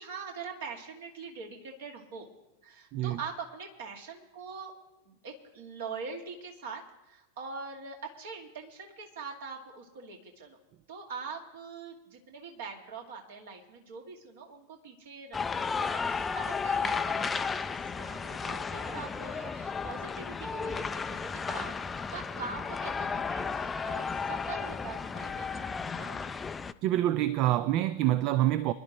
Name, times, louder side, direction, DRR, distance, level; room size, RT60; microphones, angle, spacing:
voice 1, 0.0-2.3 2.6-4.8 5.1-10.6 10.9-17.3 17.6-21.8 22.1-26.5, right 5 dB, 55° right, 2.1 m, -43 dB
sound 1, 15.3-26.7, left 5 dB, 15° left, 0.4 m, -33 dB
voice 2, 26.8-28.7, right 13 dB, 40° right, 0.4 m, -26 dB
24.5 x 11.0 x 3.0 m
figure-of-eight pair, 90°, 0 cm